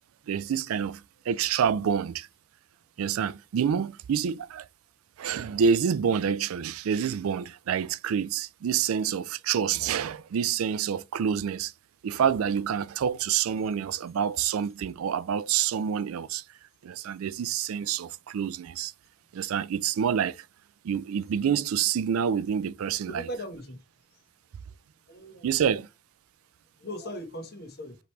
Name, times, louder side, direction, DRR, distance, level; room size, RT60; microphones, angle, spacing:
voice 1, 0.3-2.3 3.0-4.7 5.2-11.7 12.0-16.4 16.8-18.9 19.3-20.4 20.8-23.3 25.4-25.9, right 7 dB, 80° right, 0.4 m, -27 dB
voice 2, 23.1-23.8 25.1-25.5 26.8-28.0, equal, 50° left, 1.2 m, -38 dB
5.0 x 3.0 x 3.2 m
head